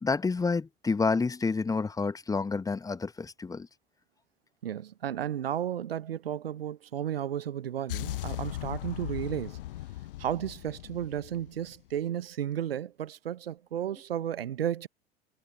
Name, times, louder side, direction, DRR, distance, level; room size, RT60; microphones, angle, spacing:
voice 1, 0.0-3.7, left 4 dB, 10° left, 1.1 m, -29 dB
voice 2, 4.6-9.6 10.2-14.9, right 10 dB, 70° right, 1.1 m, -33 dB
sound 1, 7.9-12.0, left 15 dB, 60° left, 0.5 m, -38 dB
figure-of-eight pair, 80°, 31 cm